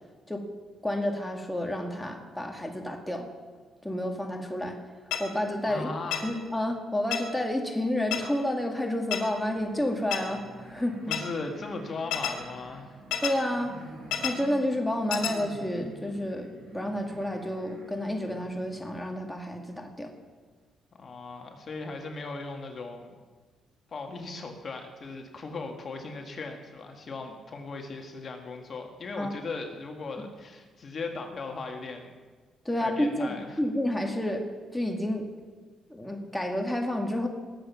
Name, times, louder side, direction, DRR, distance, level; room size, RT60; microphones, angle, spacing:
voice 1, 0.8-3.3 3.8-4.8 5.2-5.9 6.2-11.0 13.2-13.7 14.2-20.1 29.2-29.3 32.7-34.4 34.7-35.3 35.9-37.3, left 1 dB, 5° left, 2 dB, 2.0 m, -30 dB
sound 1, 5.1-5.2 6.1-6.2 7.1-7.2 8.1-8.2 9.1-9.2 10.1-10.2 11.1-11.2 12.1-12.3 13.1-13.3 14.1-14.3 15.1-15.3, left 10 dB, 90° left, 1.9 m, -28 dB
voice 2, 5.6-6.3 11.1-12.9 21.0-23.1 23.9-32.1 32.8-33.6, left 3 dB, 45° left, 3 dB, 1.9 m, -38 dB
sound 2, 9.3-18.8, right 2 dB, 85° right, 5.8 m, -47 dB
20.0 x 8.0 x 5.8 m, 1.4 s
cardioid pair, 90°, 0 cm